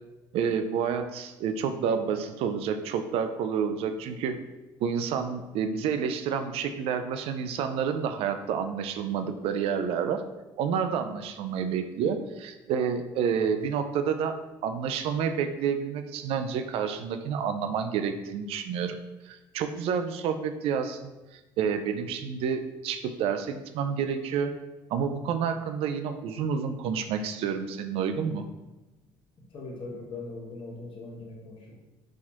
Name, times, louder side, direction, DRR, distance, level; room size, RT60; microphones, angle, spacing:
voice 1, 0.3-4.4 4.8-10.2 10.6-14.4 14.6-19.0 19.2-21.1 21.6-24.5 24.9-28.5, right 7 dB, 65° right, 8 dB, 0.4 m, -29 dB
voice 2, 29.5-31.8, left 3 dB, 50° left, -1 dB, 1.0 m, -40 dB
4.2 x 2.3 x 2.9 m, 1.1 s
hypercardioid pair, 60°, 11 cm